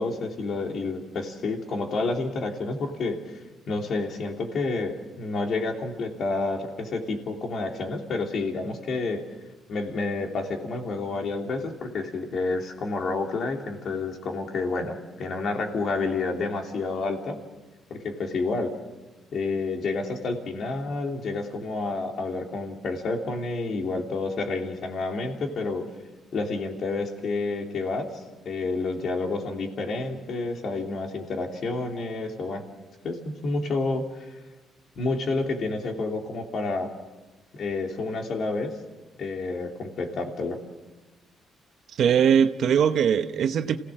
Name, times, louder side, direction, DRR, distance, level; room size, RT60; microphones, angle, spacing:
voice 1, 0.0-3.2 3.7-9.2 9.7-17.4 17.9-18.7 19.3-25.8 26.3-32.6 33.0-34.4 34.9-36.9 37.5-38.7 39.2-40.6, left 3 dB, 60° left, 3 dB, 3.1 m, -29 dB
voice 2, 42.0-43.8, right 8 dB, 70° right, 9 dB, 0.9 m, -21 dB
27.5 x 16.5 x 7.5 m, 1.2 s
cardioid pair, 90°, 0 cm